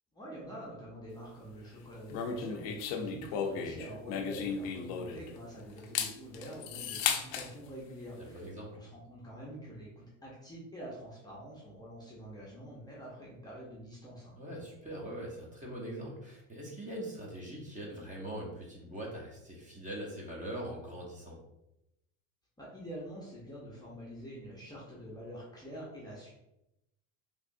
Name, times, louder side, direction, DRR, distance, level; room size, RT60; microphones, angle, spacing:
voice 1, 0.1-14.4 22.6-26.3, equal, 10° left, -6 dB, 0.7 m, -46 dB
sound 1, 2.1-5.4 5.8-7.5, left 6 dB, 65° left, 0.6 m, -35 dB
voice 2, 8.2-8.7 14.4-21.4, right 1 dB, 20° right, -3 dB, 0.9 m, -42 dB
3.3 x 3.0 x 2.6 m, 0.87 s
supercardioid pair, 125°, 39 cm